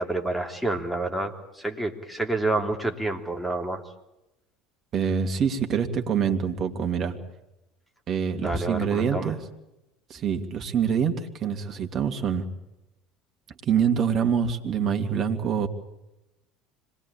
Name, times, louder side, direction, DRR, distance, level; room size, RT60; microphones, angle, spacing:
voice 1, 0.0-3.8 8.4-9.3, right 2 dB, ahead, 4 dB, 3.1 m, -28 dB
voice 2, 4.9-7.2 8.1-9.4 10.1-12.5 13.6-15.7, right 7 dB, 40° right, 5 dB, 2.6 m, -25 dB
26.0 x 20.0 x 8.8 m, 0.94 s
figure-of-eight pair, 70°, 0 cm